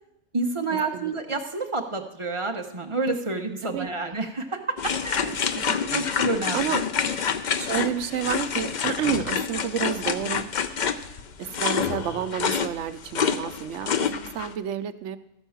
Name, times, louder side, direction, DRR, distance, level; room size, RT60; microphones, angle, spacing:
voice 1, 0.3-5.4 5.9-6.7, right 3 dB, 30° right, 4 dB, 0.8 m, -29 dB
voice 2, 3.6-4.1 4.9-5.0 5.5-6.0 6.5-6.8 7.6-10.5 11.4-15.2, right 10 dB, 80° right, 11 dB, 0.9 m, -30 dB
sound 1, 4.8-14.5, left 7 dB, 55° left, 0.5 m, -27 dB
13.5 x 4.5 x 7.1 m, 0.85 s
omnidirectional pair, 1.3 m